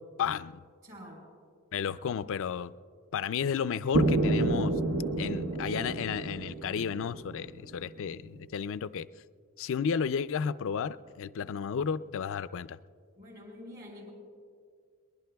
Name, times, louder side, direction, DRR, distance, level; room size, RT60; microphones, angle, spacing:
voice 1, 0.2-0.6 1.7-2.7 3.1-4.7 5.2-9.1 9.6-12.8, left 7 dB, 60° left, 15 dB, 0.4 m, -32 dB
voice 2, 0.8-1.3 13.2-14.1, left 1 dB, 45° right, -1 dB, 4.0 m, -48 dB
sound 1, 3.9-7.8, right 2 dB, 65° right, 0.9 m, -29 dB
22.0 x 20.5 x 2.3 m, 2.1 s
head